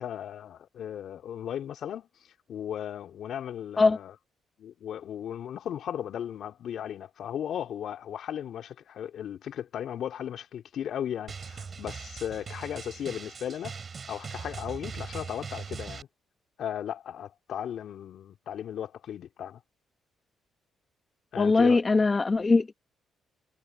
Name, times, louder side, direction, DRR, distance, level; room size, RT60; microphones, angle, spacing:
voice 1, 0.0-2.1 2.5-4.1 4.6-13.8 14.1-16.1 16.6-19.6 21.3-21.8, left 9 dB, 70° left, 4.2 m, -36 dB
Drum, 11.3-16.0, right 5 dB, 40° right, 4.1 m, -40 dB
voice 2, 21.4-22.7, left 3 dB, 25° left, 1.7 m, -21 dB
cardioid pair, 90°, 0 cm